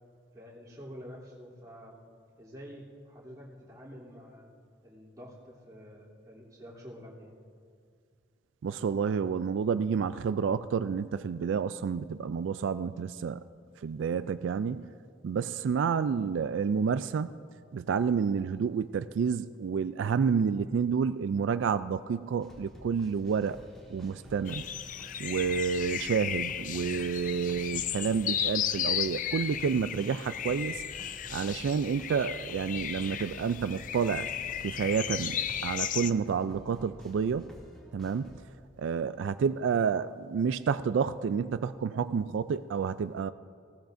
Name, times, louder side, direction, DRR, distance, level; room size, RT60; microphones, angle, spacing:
voice 1, 0.3-2.0 2.4-4.5 4.8-7.4, equal, 20° right, -7 dB, 3.0 m, -48 dB
voice 2, 8.6-13.4 13.8-14.9 15.2-17.3 17.7-23.6 23.9-24.7 25.2-30.8 31.3-34.3 34.6-37.5 37.9-38.4 38.8-43.3, right 6 dB, 85° right, 12 dB, 0.3 m, -29 dB
sound 1, 22.4-38.4, equal, 5° left, 2.4 m, -51 dB
sound 2, 24.5-36.1, left 9 dB, 45° left, 0.4 m, -35 dB
19.5 x 17.0 x 2.6 m, 2.2 s
head